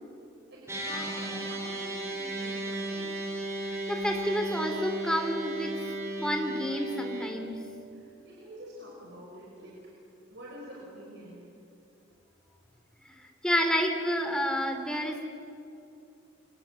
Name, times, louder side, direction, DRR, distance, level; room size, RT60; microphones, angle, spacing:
voice 1, 0.5-3.3 7.9-9.8 10.3-11.5, right 1 dB, 60° right, -4 dB, 5.5 m, -46 dB
sound 1, 0.7-7.3, right 1 dB, 15° right, 4.7 m, -35 dB
voice 2, 3.6-5.8 6.2-7.6 13.0-15.2, equal, 5° left, 4 dB, 2.7 m, -30 dB
29.0 x 24.0 x 8.2 m, 2.7 s
head